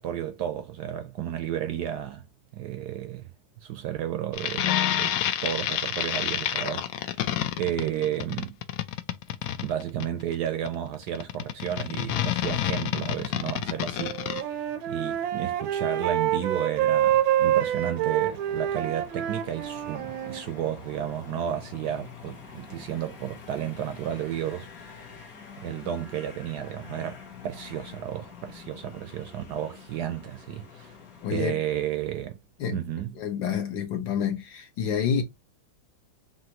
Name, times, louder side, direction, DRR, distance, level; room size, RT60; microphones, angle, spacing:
voice 1, 0.0-2.2 2.5-3.3 3.6-5.2 5.4-8.6 9.6-14.6 14.9-24.9 25.6-31.0 31.3-32.4 32.7-33.1, right 10 dB, 75° right, 1.0 m, -32 dB
sound 1, 4.3-14.4, left 11 dB, 85° left, 0.7 m, -28 dB
sound 2, 13.2-31.4, left 6 dB, 55° left, 1.4 m, -47 dB
Wind instrument woodwind instrument, 14.0-20.4, right 11 dB, 90° right, 1.4 m, -26 dB
voice 2, 31.2-31.6 32.6-32.8 33.2-35.2, left 7 dB, 70° left, 1.7 m, -28 dB
5.6 x 2.5 x 2.8 m
omnidirectional pair, 2.1 m